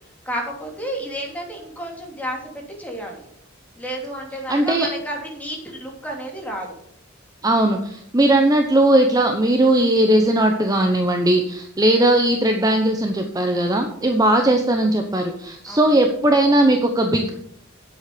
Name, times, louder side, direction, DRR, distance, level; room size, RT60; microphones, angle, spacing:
voice 1, 0.2-3.2 3.8-6.8 15.7-15.8, equal, 10° left, 0 dB, 3.0 m, -31 dB
voice 2, 4.5-4.9 7.4-17.3, right 1 dB, 20° right, 4 dB, 0.9 m, -18 dB
9.7 x 8.1 x 6.9 m, 0.69 s
head